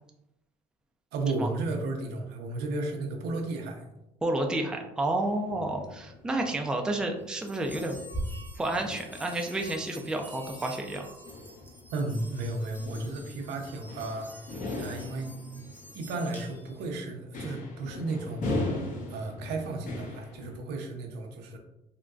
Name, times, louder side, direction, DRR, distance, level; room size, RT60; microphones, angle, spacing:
voice 1, 1.1-3.8 11.9-14.5 14.8-15.4 15.9-18.6 19.1-21.6, right 2 dB, 80° right, 3 dB, 0.6 m, -33 dB
voice 2, 4.2-8.0 8.6-11.1, right 2 dB, 5° right, 2 dB, 0.3 m, -30 dB
sound 1, 5.2-20.6, left 2 dB, 50° left, 0.7 m, -40 dB
sound 2, 7.3-16.8, right 1 dB, 10° left, 0.8 m, -44 dB
3.7 x 2.2 x 2.3 m, 0.89 s
cardioid pair, 110°, 17 cm